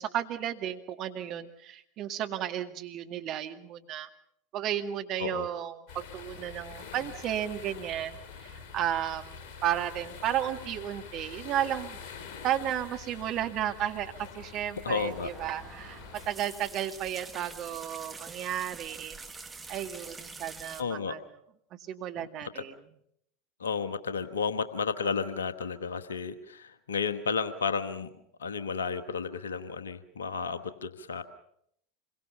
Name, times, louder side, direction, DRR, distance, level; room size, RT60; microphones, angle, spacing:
voice 1, 0.0-4.1 4.5-12.0 12.4-16.0 16.3-19.2 19.7-21.2 21.9-22.8, right 11 dB, 45° right, 6 dB, 2.1 m, -33 dB
sound 1, 5.9-16.3, left 6 dB, 50° left, 5.0 m, -46 dB
voice 2, 14.8-15.3 20.8-21.2 22.2-22.6 23.6-28.1 28.4-31.2, left 5 dB, 80° left, 11 dB, 1.2 m, -32 dB
sound 2, 15.0-20.8, right 4 dB, 15° right, 1.9 m, -46 dB
27.0 x 22.5 x 5.7 m, 0.73 s
figure-of-eight pair, 80°, 0 cm